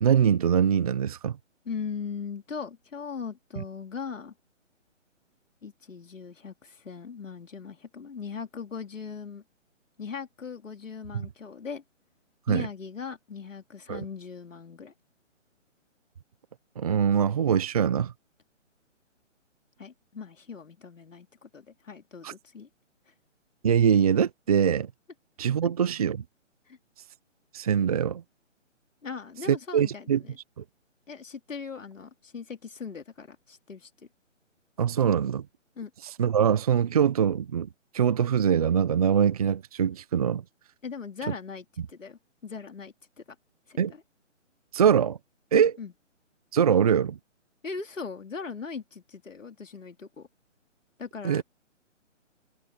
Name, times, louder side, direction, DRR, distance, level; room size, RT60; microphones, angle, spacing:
voice 1, 0.0-1.4 3.6-3.7 12.5-12.7 13.9-14.0 16.8-18.1 22.2-22.3 23.6-24.9 25.4-26.2 27.5-28.2 29.5-30.2 30.6-30.7 34.8-35.4 36.0-37.7 37.9-40.4 43.8-43.9 44.7-45.2 45.5-45.8 46.5-47.2 51.2-51.4, right 8 dB, 30° right, 0.8 m, -23 dB
voice 2, 1.6-4.3 5.6-9.4 10.0-11.8 12.5-14.9 19.8-22.7 23.1-23.2 25.6-25.7 26.7-26.8 29.0-30.4 31.1-33.9 35.8-35.9 40.8-42.9 43.3-43.4 43.7-44.0 45.8-45.9 47.6-50.3 51.0-51.4, left 5 dB, 85° left, 3.1 m, -39 dB
hypercardioid pair, 160°, 38 cm